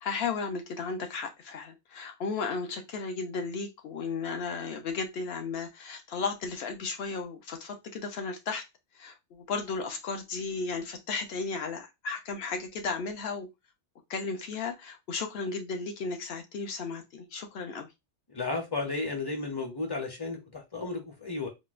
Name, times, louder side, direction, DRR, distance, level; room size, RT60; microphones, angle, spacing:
voice 1, 0.0-8.6 8.9-13.5 14.1-17.9, left 4 dB, 65° left, 0.9 m, -34 dB
voice 2, 18.3-21.5, left 3 dB, 25° left, 0.6 m, -33 dB
4.0 x 2.1 x 2.4 m
omnidirectional pair, 1.2 m